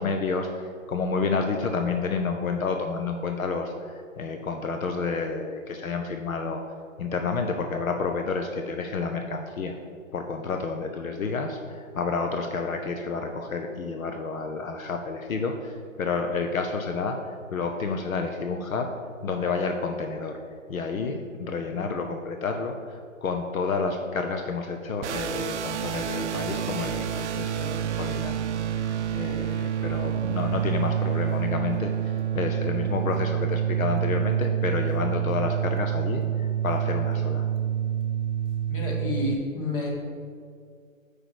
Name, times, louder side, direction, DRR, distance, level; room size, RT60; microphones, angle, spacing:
voice 1, 0.0-6.6 7.0-9.8 10.1-18.9 19.2-20.4 20.7-37.5, left 4 dB, 85° left, 5 dB, 0.9 m, -30 dB
sound 1, 25.0-39.4, right 9 dB, 60° right, 0.5 m, -28 dB
voice 2, 38.7-39.9, left 2 dB, 40° left, -2 dB, 2.1 m, -29 dB
8.3 x 5.0 x 4.8 m, 2.2 s
hypercardioid pair, 150°, 41 cm